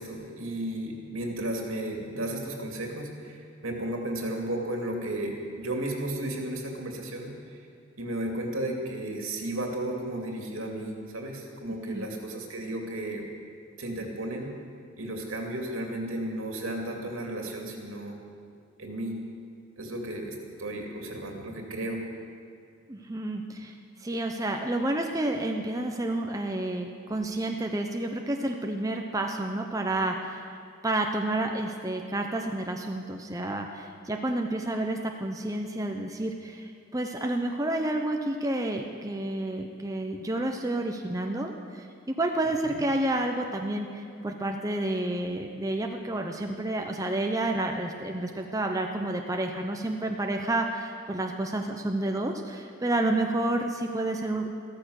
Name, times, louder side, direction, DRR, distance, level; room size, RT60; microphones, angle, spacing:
voice 1, 0.0-7.6 8.0-13.2 13.8-14.5 15.0-18.2 18.8-19.2 19.8-22.0, right 1 dB, 80° right, 1 dB, 2.6 m, -34 dB
voice 2, 11.7-12.1 22.9-30.6 30.8-54.5, right 1 dB, 15° right, 3 dB, 0.7 m, -30 dB
15.0 x 13.5 x 6.5 m, 2.4 s
head